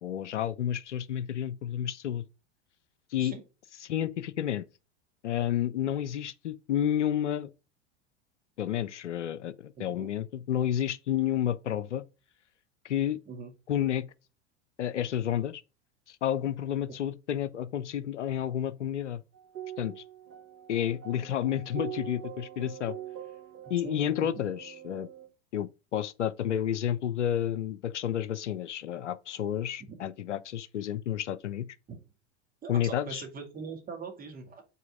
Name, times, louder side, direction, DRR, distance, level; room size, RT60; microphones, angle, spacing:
voice 1, 0.0-2.2 3.1-3.3 3.8-4.7 5.2-7.5 8.6-12.0 12.8-13.2 13.7-14.1 14.8-15.6 16.1-19.2 19.8-20.0 20.7-23.0 23.7-25.1 25.5-31.7 32.7-33.2, left 10 dB, 80° left, 0.5 m, -30 dB
sound 1, 19.3-25.3, right 11 dB, 40° right, 2.6 m, -43 dB
voice 2, 23.8-24.1 29.9-30.0 31.9-32.0 32.6-34.6, right 5 dB, 25° right, 1.9 m, -41 dB
5.5 x 4.2 x 4.9 m
figure-of-eight pair, 85°, 36 cm